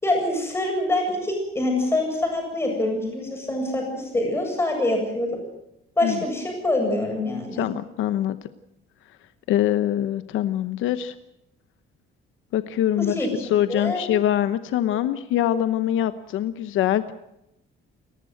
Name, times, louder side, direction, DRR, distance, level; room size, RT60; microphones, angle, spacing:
voice 1, 0.0-5.4 6.0-7.6 13.0-13.3 13.7-14.0, left 1 dB, 10° left, 1 dB, 8.0 m, -25 dB
voice 2, 7.6-8.4 9.5-11.1 12.5-17.1, left 11 dB, 70° left, 11 dB, 1.0 m, -24 dB
30.0 x 14.5 x 7.8 m, 0.84 s
cardioid pair, 180°, 21 cm